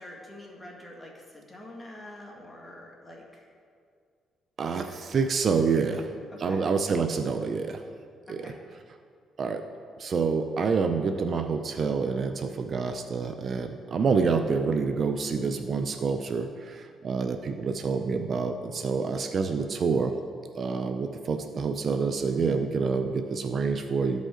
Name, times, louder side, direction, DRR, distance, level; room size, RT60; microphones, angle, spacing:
voice 1, 0.0-3.4 6.3-6.6 8.3-8.6, left 1 dB, 15° left, -2 dB, 1.9 m, -46 dB
voice 2, 4.6-6.1 6.4-7.8 8.3-8.5 9.4-9.6 10.0-20.1 20.6-24.2, right 5 dB, 50° right, 7 dB, 0.5 m, -27 dB
13.5 x 5.2 x 3.8 m, 2.2 s
cardioid pair, 90°, 0 cm